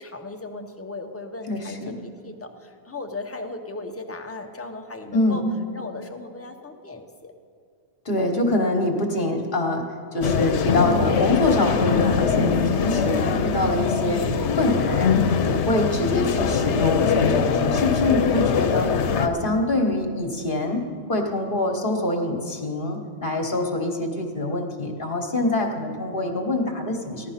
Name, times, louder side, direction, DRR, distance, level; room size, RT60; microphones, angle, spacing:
voice 1, 0.0-5.4 5.7-7.3, left 2 dB, 15° left, 4 dB, 0.7 m, -37 dB
voice 2, 1.5-1.9 5.1-5.4 8.0-9.8 10.1-18.9 19.2-20.8 21.1-27.3, left 2 dB, 50° left, 2 dB, 1.3 m, -25 dB
sound 1, 10.2-19.3, left 6 dB, 80° left, 1.0 m, -22 dB
15.5 x 11.5 x 5.7 m, 2.3 s
omnidirectional pair, 1.1 m